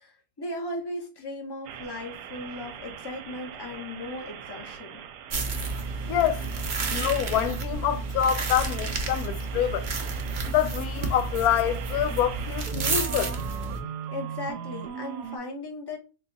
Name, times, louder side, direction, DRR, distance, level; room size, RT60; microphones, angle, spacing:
voice 1, 0.0-5.0 14.1-16.0, left 1 dB, 25° left, 0.6 m, -37 dB
sound 1, 1.7-15.4, right 8 dB, 80° right, 1.2 m, -40 dB
sound 2, 5.3-13.8, right 4 dB, 55° right, 0.5 m, -31 dB
voice 2, 6.1-9.9 10.4-13.4, left 10 dB, 70° left, 1.0 m, -26 dB
3.8 x 2.3 x 3.9 m
omnidirectional pair, 1.8 m